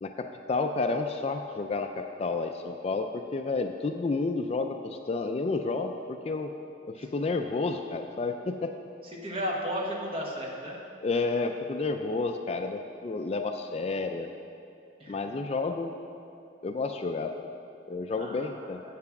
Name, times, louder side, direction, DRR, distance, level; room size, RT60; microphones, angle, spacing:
voice 1, 0.0-6.5 6.9-8.7 11.0-14.3 15.1-16.0 16.6-17.5 17.9-18.8, left 3 dB, 35° left, 6 dB, 0.3 m, -30 dB
voice 2, 9.1-10.8 15.0-15.2 18.2-18.7, equal, 30° right, -2 dB, 1.3 m, -34 dB
8.7 x 6.0 x 5.9 m, 2.6 s
head